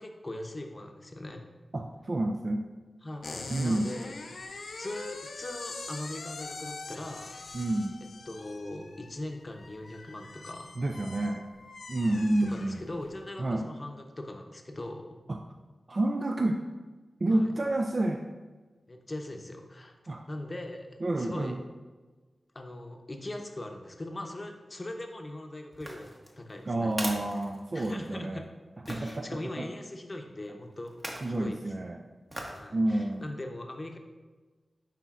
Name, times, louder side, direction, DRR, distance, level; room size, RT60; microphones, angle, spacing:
voice 1, 0.0-1.5 3.0-4.2 4.8-7.3 8.3-10.8 12.0-15.1 17.3-17.5 18.9-19.9 20.3-21.6 22.5-26.1 26.4-27.0 27.7-28.4 28.9-31.0 31.3-31.7 32.5-34.0, left 1 dB, 35° left, 3 dB, 0.7 m, -40 dB
voice 2, 1.7-2.6 3.5-3.8 7.5-8.0 10.8-11.5 11.9-12.8 13.4-13.6 15.3-15.4 15.9-16.6 17.2-18.2 20.1-20.2 21.0-21.6 26.7-28.4 29.0-29.2 29.6-29.7 31.2-32.0 32.7-33.3, right 1 dB, 45° right, 3 dB, 0.4 m, -29 dB
sound 1, 3.2-13.2, left 3 dB, 75° left, 0.5 m, -43 dB
Cigarette Box Lighter pickup drop glass, 25.7-28.2 28.9-29.2 30.9-31.4 32.3-32.7 33.1-33.2, equal, 20° right, 1.0 m, -40 dB
9.7 x 3.9 x 2.4 m, 1.3 s
wide cardioid pair, 75°, 0 cm